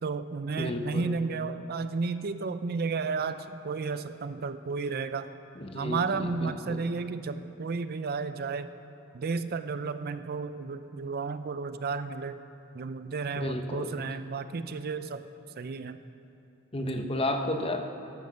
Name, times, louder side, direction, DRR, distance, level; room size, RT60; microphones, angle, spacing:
voice 1, 0.0-5.3 5.7-8.7 9.1-12.4 12.7-15.2 15.6-16.0 16.8-17.2, right 4 dB, 45° right, 11 dB, 0.5 m, -33 dB
voice 2, 0.6-1.1 5.6-6.8 13.4-14.0 16.7-17.8, left 1 dB, 25° left, 5 dB, 0.9 m, -32 dB
15.5 x 11.0 x 6.3 m, 2.7 s
head